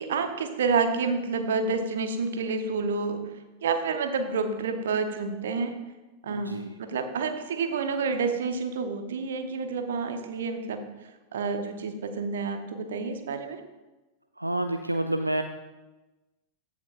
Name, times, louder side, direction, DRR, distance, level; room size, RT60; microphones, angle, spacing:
voice 1, 0.0-3.2 3.6-5.7 6.2-10.8 11.3-13.6, right 4 dB, 60° right, 7 dB, 0.8 m, -29 dB
voice 2, 6.3-6.7 14.4-15.4, right 1 dB, 85° right, 7 dB, 0.3 m, -28 dB
14.5 x 5.7 x 2.4 m, 1.1 s
figure-of-eight pair, 90°, 0 cm